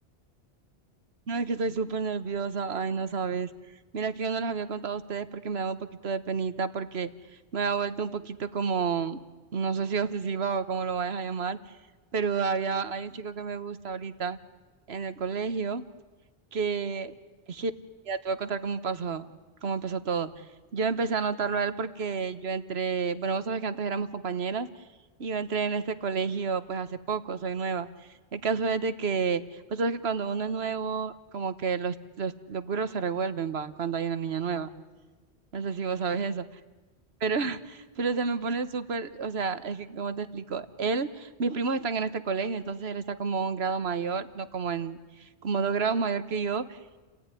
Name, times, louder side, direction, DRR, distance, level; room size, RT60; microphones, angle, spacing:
voice 1, 1.3-3.5 3.9-7.1 7.5-9.2 9.5-11.6 12.1-14.4 14.9-15.8 16.5-17.1 17.5-17.7 18.1-19.3 19.6-20.3 20.7-24.7 25.2-27.9 28.3-34.7 35.5-36.4 37.2-46.8, right 5 dB, 75° right, 12 dB, 1.4 m, -30 dB
30.0 x 17.5 x 9.9 m, 1.3 s
omnidirectional pair, 1.1 m